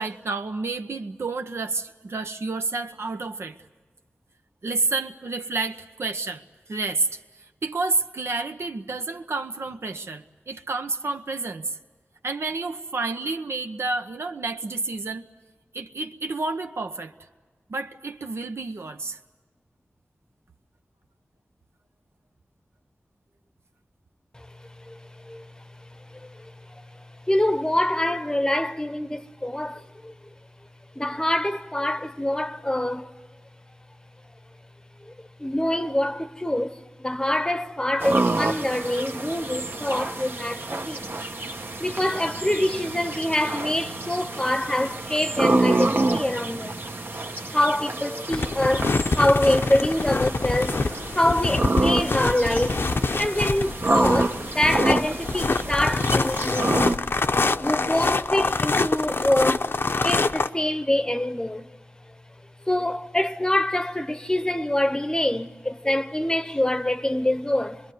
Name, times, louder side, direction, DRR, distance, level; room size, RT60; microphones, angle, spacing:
voice 1, 0.0-3.6 4.6-6.4 6.7-7.2 7.6-11.8 12.2-15.3 15.7-17.1 17.7-19.2, right 3 dB, 80° right, 1.0 m, -29 dB
voice 2, 27.3-30.1 31.0-33.1 35.1-35.2 35.4-41.1 41.8-46.8 47.5-50.8 51.1-56.8 57.6-59.7 60.0-61.6 62.7-67.8, left 1 dB, 15° left, 0.8 m, -25 dB
sound 1, 38.0-57.0, right 2 dB, 55° right, 1.1 m, -28 dB
sound 2, 48.3-60.5, left 3 dB, 60° left, 0.7 m, -25 dB
26.0 x 21.5 x 9.4 m
wide cardioid pair, 65°, 4 cm